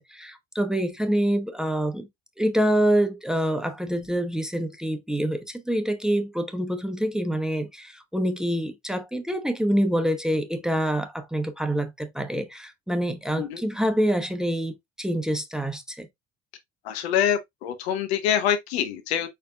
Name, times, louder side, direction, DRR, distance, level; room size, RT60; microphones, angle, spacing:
voice 1, 0.0-2.1 2.4-16.1, equal, ahead, 1.0 m, -26 dB
voice 2, 16.8-19.3, left 9 dB, 70° left, 0.9 m, -25 dB
5.0 x 4.5 x 2.2 m
figure-of-eight pair, 50°, 33 cm